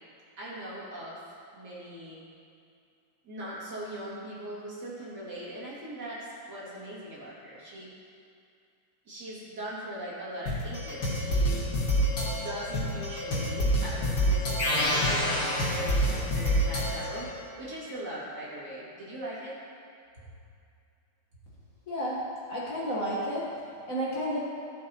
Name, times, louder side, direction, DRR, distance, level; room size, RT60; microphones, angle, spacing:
voice 1, 0.4-2.2 3.2-7.9 9.1-11.6 12.3-19.6, right 1 dB, 50° right, -8 dB, 2.8 m, -40 dB
sound 1, 10.5-17.3, equal, 70° left, 2.8 m, -28 dB
sound 2, 14.6-16.5, left 1 dB, 20° left, 1.2 m, -29 dB
voice 2, 21.9-22.2 22.5-23.5 23.9-24.4, equal, 45° left, -7 dB, 1.6 m, -31 dB
14.0 x 7.3 x 2.9 m, 2.4 s
omnidirectional pair, 2.4 m